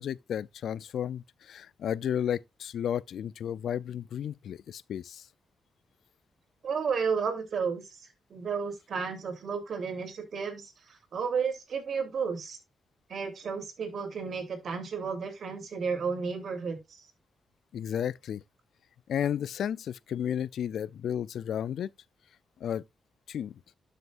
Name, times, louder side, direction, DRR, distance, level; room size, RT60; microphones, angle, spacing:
voice 1, 0.0-5.3 17.7-18.4 19.1-21.9 22.6-22.8 23.3-23.6, left 9 dB, 75° left, 0.4 m, -33 dB
voice 2, 6.6-12.6 13.1-17.1, right 5 dB, 65° right, 3.1 m, -33 dB
12.0 x 6.4 x 2.5 m
supercardioid pair, 45°, 0 cm